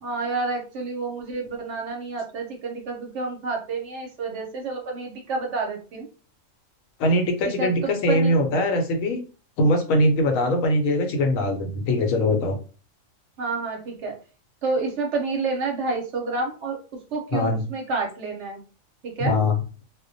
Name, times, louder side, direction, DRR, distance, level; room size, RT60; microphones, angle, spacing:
voice 1, 0.0-6.1 7.4-8.3 13.4-14.2 14.6-18.7 19.0-19.4, right 3 dB, 70° right, 1 dB, 0.8 m, -29 dB
voice 2, 7.0-9.2 9.6-12.6 17.3-17.6 19.2-19.6, left 1 dB, 75° left, 4 dB, 1.0 m, -22 dB
2.3 x 2.1 x 2.5 m, 0.36 s
omnidirectional pair, 1.4 m